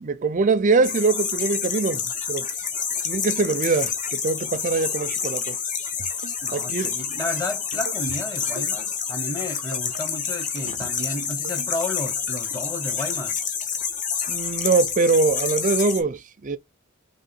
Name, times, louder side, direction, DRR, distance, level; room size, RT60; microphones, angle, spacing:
voice 1, 0.0-2.5 3.0-5.6 6.5-6.9 10.7-10.8 14.3-16.6, right 4 dB, 35° right, 0.4 m, -23 dB
sound 1, 0.8-16.0, left 6 dB, 35° left, 0.8 m, -28 dB
sound 2, 5.9-6.3 6.7-7.0 7.7-8.2 8.5-8.8 9.6-10.0 10.4-10.8 11.4-11.8 12.3-12.6, right 4 dB, 90° right, 0.6 m, -39 dB
voice 2, 6.4-13.4, left 2 dB, 15° left, 1.0 m, -32 dB
3.7 x 3.1 x 4.3 m
head